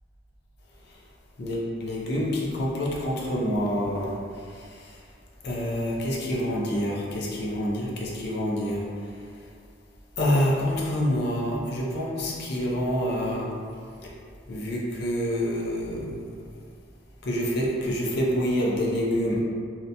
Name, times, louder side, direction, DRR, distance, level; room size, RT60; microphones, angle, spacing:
voice 1, 1.4-2.3 2.5-4.1 5.4-8.8 10.2-13.5 14.5-16.0 17.3-19.4, equal, 60° left, -4 dB, 0.5 m, -27 dB
2.8 x 2.1 x 2.5 m, 2.2 s
head